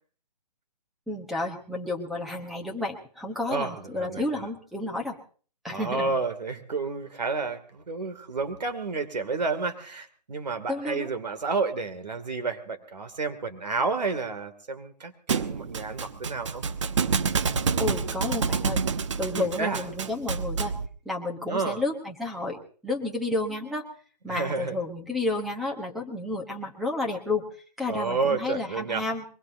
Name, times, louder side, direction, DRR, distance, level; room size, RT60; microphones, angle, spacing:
voice 1, 1.1-5.2 5.6-6.2 10.7-11.1 17.8-18.8 19.2-20.7 21.0-23.8 24.2-27.4 27.8-29.2, left 2 dB, ahead, 1 dB, 1.0 m, -31 dB
voice 2, 3.5-4.5 5.7-16.6 19.3-19.8 21.4-21.8 24.3-24.7 27.9-29.1, right 4 dB, 85° right, 8 dB, 2.6 m, -30 dB
Thump thud, 15.3-20.9, right 5 dB, 45° right, 1.0 m, -28 dB
23.0 x 21.0 x 2.7 m, 0.42 s
hypercardioid pair, 170°, 21 cm